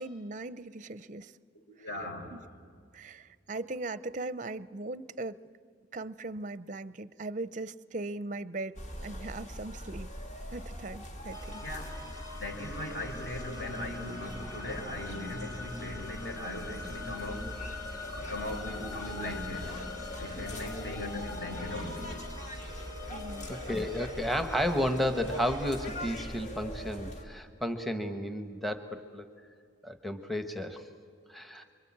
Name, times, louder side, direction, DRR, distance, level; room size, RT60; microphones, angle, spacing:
voice 1, 0.0-1.3 2.3-2.4 2.9-5.4 5.9-8.8 9.0-10.1 10.5-11.6 20.2-20.4 23.1-23.5, right 2 dB, 40° right, 16 dB, 0.6 m, -39 dB
voice 2, 1.5-2.4 11.6-12.0 12.4-17.7 18.1-19.8 20.2-22.2, left 1 dB, 55° left, 2 dB, 4.7 m, -39 dB
sound 1, 8.8-27.2, equal, 35° left, 2.2 m, -42 dB
sound 2, 11.3-25.9, left 4 dB, 20° left, 2.7 m, -45 dB
Telephone, 21.6-24.7 25.1-25.2, left 3 dB, 75° left, 2.9 m, -52 dB
voice 3, 23.5-29.2 29.8-30.9 31.3-31.6, equal, ahead, 7 dB, 1.1 m, -32 dB
26.5 x 23.5 x 8.7 m, 2.2 s
head